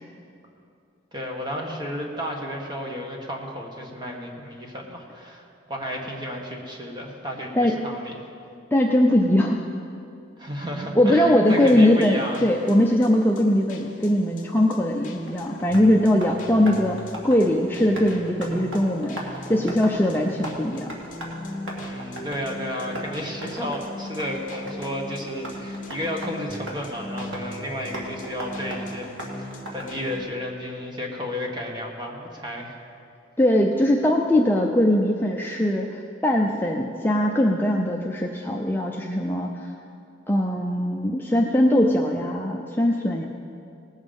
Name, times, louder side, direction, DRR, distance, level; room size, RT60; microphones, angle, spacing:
voice 1, 1.1-8.2 10.4-12.5 21.8-29.1 29.4-32.8, equal, 20° right, 0 dB, 1.4 m, -32 dB
voice 2, 8.7-9.6 11.0-17.0 17.2-20.9 33.4-39.7 40.3-43.2, left 1 dB, 10° left, 0 dB, 0.5 m, -21 dB
sound 1, 11.5-30.2, left 1 dB, 40° left, 1.1 m, -40 dB
Tap, 14.8-30.3, right 1 dB, 80° right, 2.1 m, -40 dB
18.5 x 7.3 x 5.3 m, 2.5 s
head